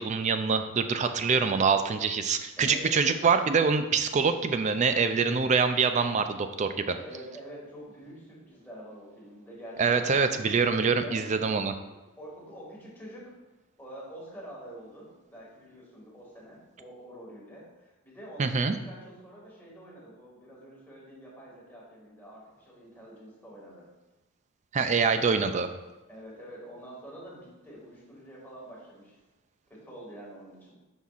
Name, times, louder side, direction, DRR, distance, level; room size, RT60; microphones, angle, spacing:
voice 1, 0.0-6.9 9.8-11.8 18.4-18.8 24.7-25.7, right 5 dB, 30° right, 9 dB, 0.4 m, -25 dB
voice 2, 2.6-3.1 6.9-11.2 11.9-13.3 13.8-23.9 26.1-29.2 29.7-30.8, right 1 dB, 10° left, -5 dB, 2.0 m, -46 dB
10.0 x 5.4 x 2.5 m, 1.1 s
head